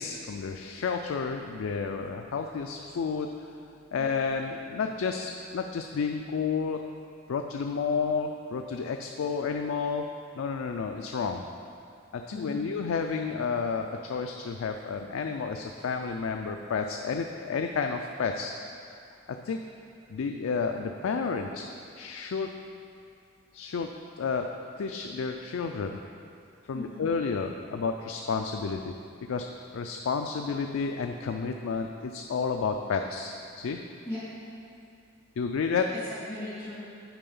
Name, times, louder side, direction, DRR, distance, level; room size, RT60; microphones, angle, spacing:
voice 1, 0.0-3.3 3.9-6.8 7.3-10.0 10.4-11.4 12.1-18.5 19.4-19.6 20.1-21.6 21.9-22.5 23.5-23.9 24.2-24.5 24.8-26.0 26.7-28.9 29.2-29.5 29.7-33.8 35.4-35.9, left 5 dB, 80° left, 4 dB, 0.4 m, -31 dB
voice 2, 12.3-12.7 26.7-27.1 34.1-34.2 35.9-36.8, left 1 dB, 10° left, -15 dB, 1.9 m, -38 dB
8.8 x 4.7 x 5.4 m, 2.5 s
head